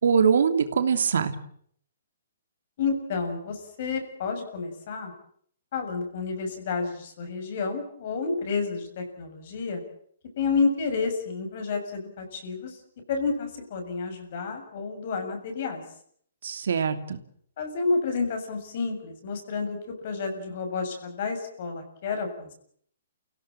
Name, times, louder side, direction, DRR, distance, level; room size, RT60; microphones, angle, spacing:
voice 1, 0.0-1.3 16.4-17.2, right 6 dB, 70° right, 9 dB, 2.9 m, -22 dB
voice 2, 2.8-5.1 5.7-9.8 10.4-12.8 13.1-15.8 17.6-22.5, left 4 dB, 45° left, 5 dB, 7.2 m, -30 dB
30.0 x 17.0 x 9.0 m, 0.63 s
hypercardioid pair, 165°, 0 cm